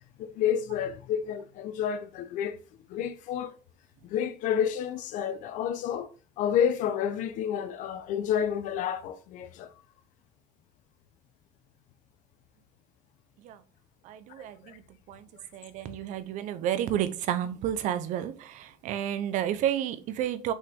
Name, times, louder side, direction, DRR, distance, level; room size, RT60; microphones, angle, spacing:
voice 1, 0.2-2.6 2.9-3.5 4.0-6.1 6.4-9.7 14.4-14.8, left 9 dB, 80° left, 0.9 m, -30 dB
voice 2, 14.0-14.8 15.1-15.3 15.5-20.5, right 11 dB, 75° right, 0.9 m, -31 dB
6.3 x 5.6 x 3.6 m
cardioid pair, 165°, 13 cm